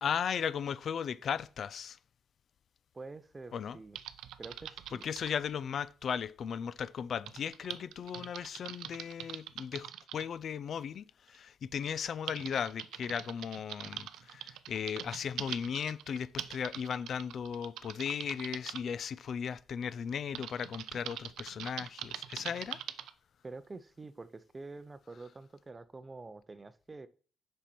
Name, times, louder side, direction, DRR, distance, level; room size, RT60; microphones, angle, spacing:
voice 1, 0.0-2.0 3.5-3.8 4.9-22.8, left 7 dB, 60° left, 0.4 m, -36 dB
voice 2, 2.9-4.0 4.4-5.0 23.4-27.1, right 3 dB, 25° right, 0.6 m, -47 dB
Typing, 4.0-5.4 7.3-10.2 11.3-11.4 11.9-18.8 20.4-23.1, right 11 dB, 85° right, 0.5 m, -43 dB
7.2 x 5.4 x 4.3 m
cardioid pair, 95°, 0 cm